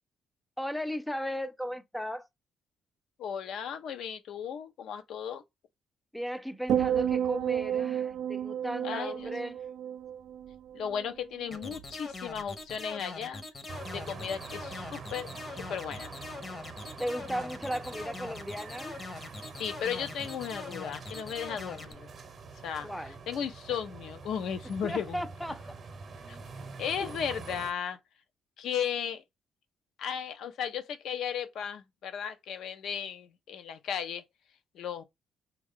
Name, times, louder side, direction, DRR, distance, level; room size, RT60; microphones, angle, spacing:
voice 1, 0.6-2.3 6.1-9.6 17.0-19.0 22.8-23.2 24.8-25.8 27.0-27.1, equal, 5° left, 0.4 m, -36 dB
voice 2, 3.2-5.4 8.8-9.3 10.7-13.4 13.9-16.1 19.6-22.1 22.6-25.2 26.3-26.4 26.8-28.0 28.6-29.2 30.0-34.2 34.7-35.0, left 8 dB, 75° left, 0.6 m, -35 dB
sound 1, 6.7-11.1 11.4-11.8, right 9 dB, 75° right, 0.4 m, -31 dB
sound 2, 11.5-21.9, left 3 dB, 30° left, 0.8 m, -42 dB
sound 3, 13.7-27.7, right 4 dB, 50° right, 0.7 m, -45 dB
3.5 x 2.3 x 3.6 m
cardioid pair, 90°, 0 cm